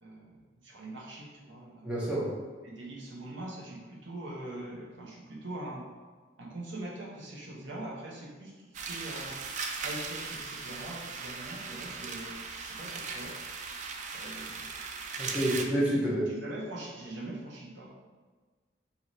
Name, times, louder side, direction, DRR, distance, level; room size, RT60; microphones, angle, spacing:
voice 1, 0.0-1.9 2.6-5.8 6.4-9.4 9.8-13.3 14.1-14.7 16.3-17.9, right 1 dB, 70° right, -3 dB, 0.9 m, -43 dB
voice 2, 1.8-2.3 15.2-16.2, right 1 dB, 5° right, -7 dB, 0.9 m, -28 dB
sound 1, 8.7-15.6, right 4 dB, 40° right, 0.3 m, -38 dB
3.0 x 2.8 x 4.0 m, 1.4 s
head